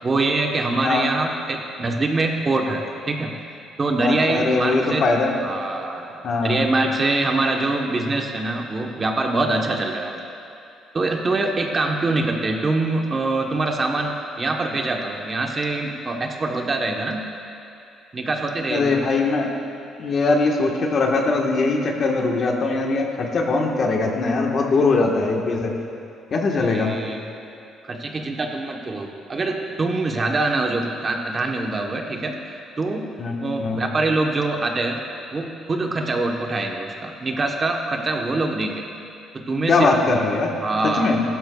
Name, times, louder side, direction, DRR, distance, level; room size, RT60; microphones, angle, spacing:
voice 1, 0.0-3.3 3.8-5.0 5.4-10.2 10.9-17.2 18.1-19.0 26.7-27.2 27.8-33.0 33.4-35.0 35.3-38.9 39.3-39.9 40.6-41.1, right 2 dB, 30° right, 2 dB, 1.0 m, -24 dB
voice 2, 4.0-5.3 6.2-6.6 18.7-19.5 20.0-25.7 26.3-27.0 33.2-33.8 39.7-40.6 40.8-41.2, left 3 dB, 50° left, 1 dB, 1.3 m, -21 dB
15.0 x 12.0 x 2.3 m, 2.6 s
cardioid pair, 100°, 0 cm